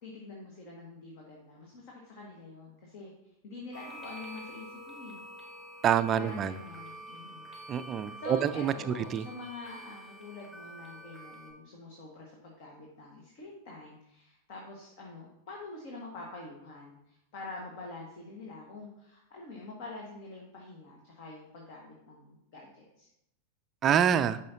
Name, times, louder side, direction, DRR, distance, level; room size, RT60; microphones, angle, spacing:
voice 1, 0.0-3.1 3.4-5.2 6.1-7.5 8.2-23.1, left 2 dB, 45° left, -1 dB, 1.6 m, -46 dB
sound 1, 3.7-11.5, right 1 dB, 20° left, 2.7 m, -47 dB
voice 2, 5.8-6.5 7.7-8.7 9.1-9.2 23.8-24.4, right 9 dB, 30° right, 13 dB, 0.4 m, -26 dB
10.0 x 5.6 x 2.8 m, 0.82 s
figure-of-eight pair, 90°, 0 cm